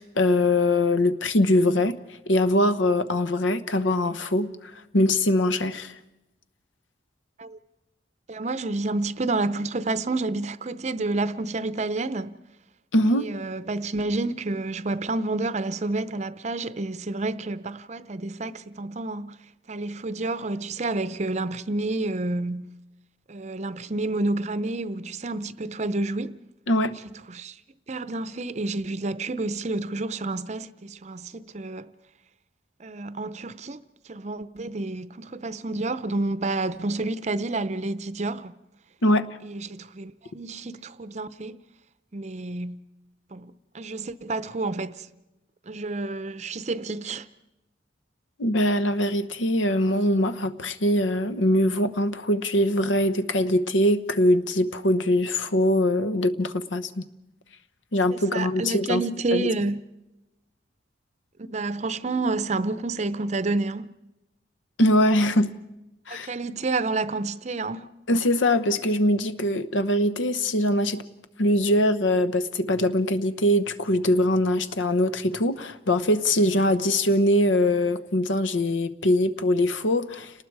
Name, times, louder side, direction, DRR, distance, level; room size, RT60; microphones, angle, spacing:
voice 1, 0.0-2.0 2.3-4.5 4.9-5.9 12.9-13.3 26.7-26.9 39.0-39.3 48.4-57.0 57.9-59.0 59.3-59.5 64.8-65.5 66.1-66.3 68.1-71.0 71.4-80.3, left 1 dB, 85° left, 1.0 m, -22 dB
voice 2, 8.3-12.4 13.1-19.4 19.7-22.7 23.3-26.4 27.0-27.5 27.9-31.9 32.8-33.8 34.1-38.5 39.4-41.6 42.1-42.8 43.3-45.1 45.7-47.3 58.1-59.8 61.4-63.9 66.1-67.9, right 2 dB, 35° right, 0.6 m, -29 dB
29.5 x 19.5 x 4.7 m
head